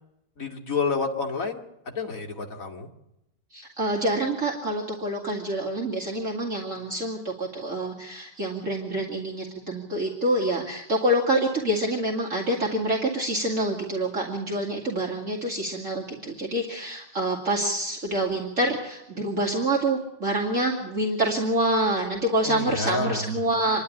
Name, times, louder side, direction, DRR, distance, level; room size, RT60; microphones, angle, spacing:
voice 1, 0.4-1.6 1.9-2.9 22.4-23.3, left 4 dB, 50° left, 1 dB, 2.3 m, -29 dB
voice 2, 3.5-23.8, right 1 dB, 50° right, -2 dB, 2.7 m, -26 dB
26.5 x 11.5 x 9.7 m, 0.89 s
omnidirectional pair, 1.8 m